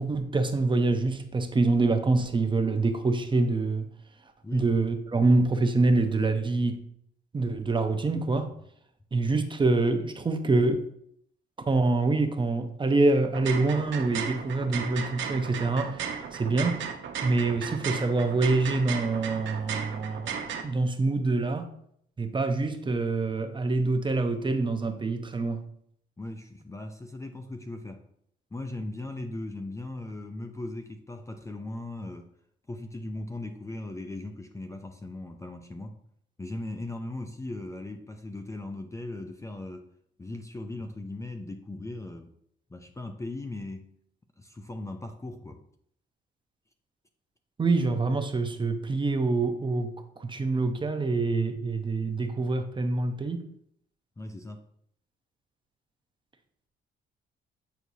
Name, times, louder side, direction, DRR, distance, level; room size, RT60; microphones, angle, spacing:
voice 1, 0.0-3.9 4.5-6.8 7.3-8.5 9.1-10.8 11.7-16.8 17.2-20.4 20.6-21.7 22.2-25.6 47.6-53.4, right 3 dB, 25° right, 6 dB, 0.7 m, -26 dB
sound 1, 13.2-20.6, right 7 dB, 70° right, 0.8 m, -35 dB
voice 2, 26.2-28.1 28.5-32.3 32.7-36.0 36.4-39.9 40.2-42.3 42.7-43.9 44.4-45.6 54.2-54.6, left 2 dB, 15° left, 6 dB, 0.5 m, -38 dB
8.2 x 4.5 x 2.7 m, 0.69 s
cardioid pair, 90°, 20 cm